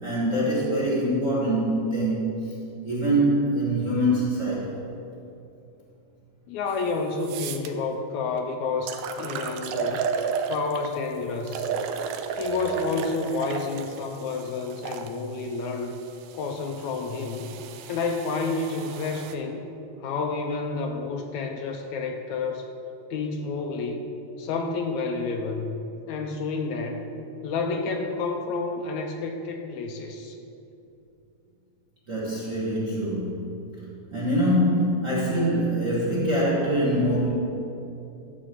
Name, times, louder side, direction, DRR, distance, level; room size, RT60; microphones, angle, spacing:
voice 1, 0.0-4.8 32.1-33.8 34.1-37.3, right 1 dB, 40° right, -6 dB, 1.2 m, -24 dB
voice 2, 6.5-10.1 10.5-11.7 12.4-16.0 16.3-17.5 17.9-19.6 20.0-22.7 23.1-24.1 24.4-25.8 26.1-27.0 27.4-30.4, left 4 dB, 80° left, 4 dB, 1.8 m, -30 dB
sound 1, 6.7-6.8 7.2-7.7 8.4-8.5 8.9-11.0 11.5-15.1 15.9-19.4, right 6 dB, 90° right, 2.1 m, -33 dB
11.5 x 4.2 x 7.4 m, 2.8 s
omnidirectional pair, 3.6 m